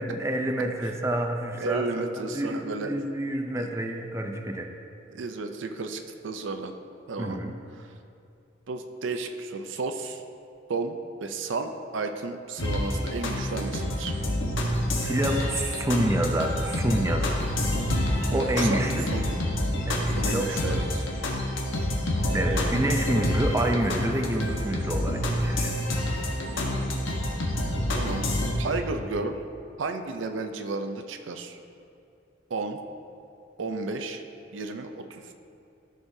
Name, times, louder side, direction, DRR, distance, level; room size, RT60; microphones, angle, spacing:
voice 1, 0.0-1.9 2.2-4.7 7.2-7.6 14.9-17.4 18.3-19.1 19.9-20.9 22.3-25.7, right 1 dB, 15° right, 3 dB, 0.5 m, -28 dB
voice 2, 1.6-3.0 3.6-3.7 5.1-6.7 7.1-7.4 7.8-7.9 8.7-10.2 10.7-14.1 18.3-18.8 19.1-19.2 20.1-21.0 22.5-22.8 26.6-26.9 27.9-28.3 28.6-29.4 29.8-31.6 32.5-32.8 33.6-34.2 34.5-35.3, right 3 dB, 75° right, 6 dB, 0.5 m, -33 dB
sound 1, 12.6-28.5, left 1 dB, 85° left, 1.2 m, -28 dB
13.0 x 6.3 x 2.7 m, 2.6 s
head